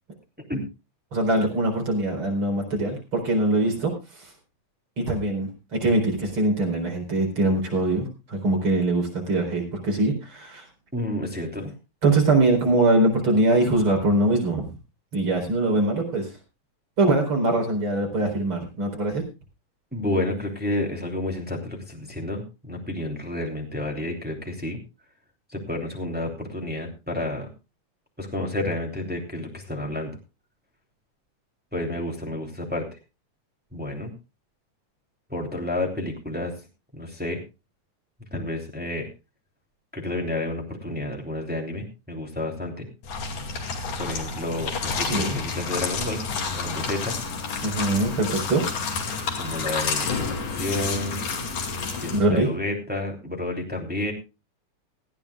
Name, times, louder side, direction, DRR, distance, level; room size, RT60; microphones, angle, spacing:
voice 1, 1.1-4.3 5.0-10.7 12.0-14.7 15.1-16.3 17.0-19.2 45.0-45.4 47.6-48.6 52.1-52.5, right 2 dB, 45° right, 1 dB, 5.2 m, -23 dB
voice 2, 10.9-11.7 19.9-24.8 25.5-27.5 28.2-30.1 31.7-32.9 33.7-34.1 35.3-36.5 36.9-37.4 38.3-39.1 39.9-42.9 44.0-46.2 46.5-47.1 49.4-51.2 52.0-54.1, left 1 dB, 5° right, 2 dB, 2.6 m, -30 dB
sound 1, 43.0-52.2, left 5 dB, 80° left, 3.8 m, -30 dB
18.5 x 14.5 x 2.4 m, 0.29 s
omnidirectional pair, 3.4 m